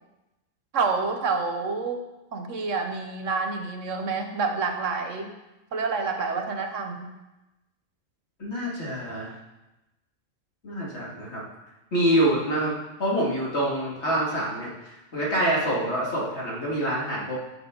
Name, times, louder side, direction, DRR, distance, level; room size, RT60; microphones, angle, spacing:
voice 1, 0.7-2.0 2.3-5.3 5.7-7.1, right 4 dB, 70° right, 4 dB, 1.3 m, -28 dB
voice 2, 8.4-9.3 10.6-11.4 11.9-12.7 13.0-17.4, right 1 dB, 55° left, -5 dB, 2.8 m, -26 dB
13.0 x 6.3 x 3.9 m, 1.0 s
omnidirectional pair, 1.4 m